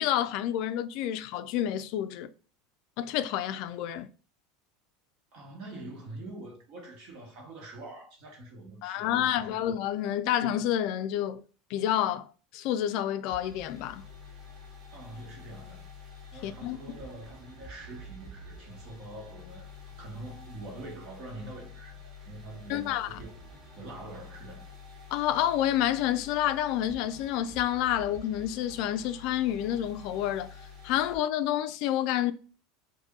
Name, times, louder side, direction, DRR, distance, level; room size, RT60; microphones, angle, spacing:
voice 1, 0.0-2.3 3.0-4.1 8.8-11.4 11.7-14.0 16.4-16.8 22.7-23.1 25.1-30.5 30.8-32.3, left 11 dB, 60° left, 0.3 m, -29 dB
voice 2, 5.3-9.6 10.2-10.3 14.9-15.9 16.3-19.7 20.0-23.3 23.8-24.7, right 2 dB, 55° right, 1.4 m, -45 dB
sound 1, 13.3-31.2, left 3 dB, 35° right, 1.3 m, -48 dB
2.6 x 2.6 x 3.6 m
supercardioid pair, 125°, 0 cm